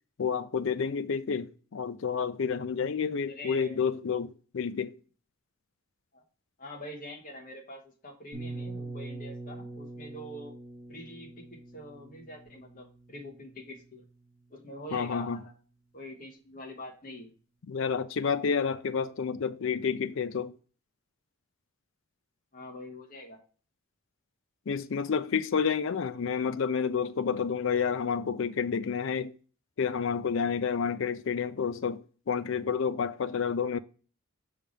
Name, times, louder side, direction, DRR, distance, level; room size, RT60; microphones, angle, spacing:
voice 1, 0.2-5.0 14.9-15.4 17.7-20.6 24.7-29.3 29.8-33.8, left 6 dB, 60° left, 0.4 m, -30 dB
voice 2, 3.3-3.8 6.1-6.2 6.6-10.5 10.9-14.0 14.5-15.5 15.9-17.3 22.5-23.4, left 1 dB, 40° left, 1.3 m, -44 dB
sound 1, 8.3-14.1, right 2 dB, 35° right, 2.1 m, -43 dB
5.7 x 3.4 x 5.1 m
head